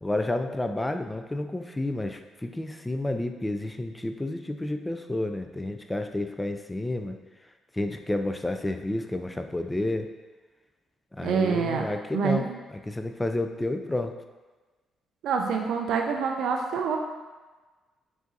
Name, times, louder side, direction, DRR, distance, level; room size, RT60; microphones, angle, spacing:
voice 1, 0.0-7.2 7.7-10.1 11.2-14.1, left 1 dB, 15° left, 7 dB, 0.3 m, -30 dB
voice 2, 11.2-11.9 12.1-12.6 15.2-17.0, right 6 dB, 75° right, 3 dB, 0.4 m, -26 dB
4.8 x 2.6 x 4.0 m, 1.3 s
cardioid pair, 90°, 0 cm